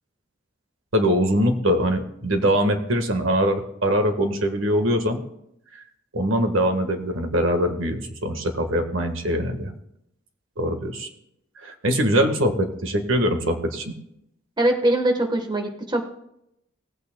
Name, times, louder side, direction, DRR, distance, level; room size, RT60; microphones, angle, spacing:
voice 1, 0.9-5.2 6.1-9.7 10.6-11.1 11.6-13.9, equal, 80° right, 6 dB, 1.4 m, -22 dB
voice 2, 14.6-16.1, right 1 dB, 20° right, 4 dB, 1.2 m, -22 dB
18.0 x 8.8 x 2.2 m, 0.78 s
head